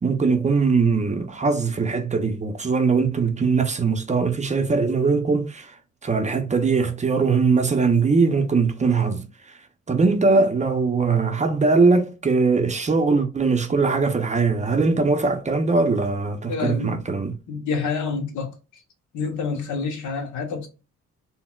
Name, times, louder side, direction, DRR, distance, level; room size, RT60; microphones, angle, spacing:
voice 1, 0.0-5.8 6.0-9.6 9.9-17.3, right 4 dB, 25° right, 0.5 m, -21 dB
voice 2, 16.5-17.0 17.5-18.5 19.1-20.7, left 5 dB, 80° left, 0.9 m, -28 dB
3.9 x 2.0 x 2.2 m
cardioid pair, 90°, 30 cm